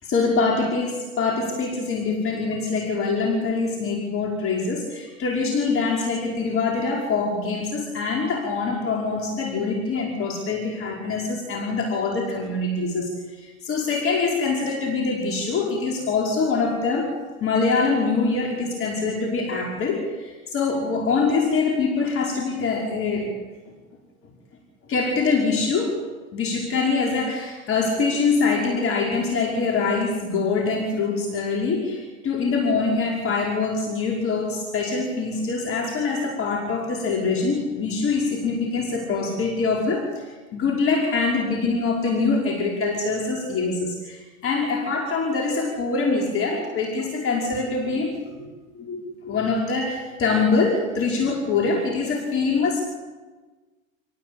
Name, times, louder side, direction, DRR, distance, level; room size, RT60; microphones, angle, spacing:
voice 1, 0.0-17.1 17.4-23.3 24.9-26.0 26.3-40.3 40.5-52.8, left 4 dB, 30° left, 0 dB, 5.5 m, -24 dB
28.5 x 19.0 x 8.8 m, 1.3 s
hypercardioid pair, 105°, 41 cm